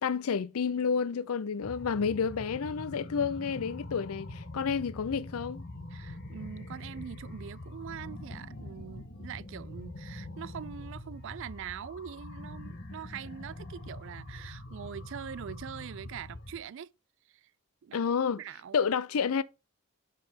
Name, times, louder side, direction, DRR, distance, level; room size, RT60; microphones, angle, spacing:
voice 1, 0.0-5.6 17.9-18.4 18.7-19.4, left 6 dB, 75° left, 0.5 m, -30 dB
sound 1, 1.6-16.6, left 1 dB, 45° left, 1.1 m, -44 dB
voice 2, 5.9-16.9 17.3-17.5 17.8-18.1 18.3-18.8, right 8 dB, 55° right, 0.3 m, -43 dB
6.9 x 3.9 x 5.0 m
head